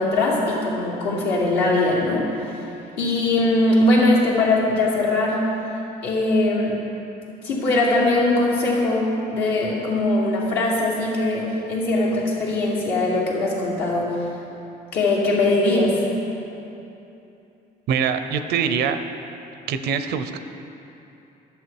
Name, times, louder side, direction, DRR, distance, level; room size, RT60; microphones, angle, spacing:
voice 1, 0.0-2.3 3.0-5.5 6.0-6.8 7.4-14.1 14.9-16.0, left 2 dB, 75° left, -5 dB, 2.4 m, -21 dB
voice 2, 17.9-19.0 19.7-20.4, right 7 dB, 75° right, 9 dB, 0.6 m, -23 dB
11.0 x 7.0 x 4.6 m, 2.9 s
cardioid pair, 110°, 17 cm